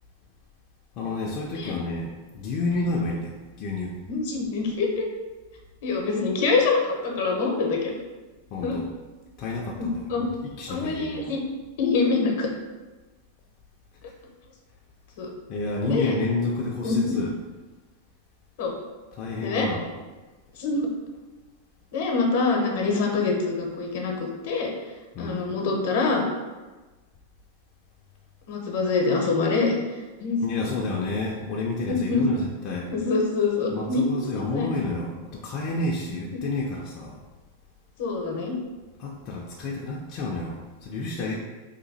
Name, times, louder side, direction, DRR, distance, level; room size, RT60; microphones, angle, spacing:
voice 1, 1.0-4.0 8.5-8.9 9.4-10.3 10.6-11.3 15.5-17.3 19.1-19.9 25.1-25.5 30.4-32.9 33.7-37.2 39.0-41.4, left 3 dB, 45° left, -3 dB, 0.4 m, -30 dB
voice 2, 1.5-1.8 4.1-5.1 5.8-7.9 8.6-8.8 9.8-10.3 10.7-11.4 11.8-12.5 15.2-15.3 15.8-16.1 16.8-17.0 18.6-18.7 19.4-19.7 20.6-20.9 21.9-24.7 25.2-26.3 28.5-29.7 30.2-30.7 31.9-32.3 32.9-34.7 36.3-36.4 38.0-38.6, left 4 dB, 65° left, 1 dB, 0.8 m, -25 dB
2.9 x 2.3 x 4.0 m, 1.2 s
hypercardioid pair, 110°, 0 cm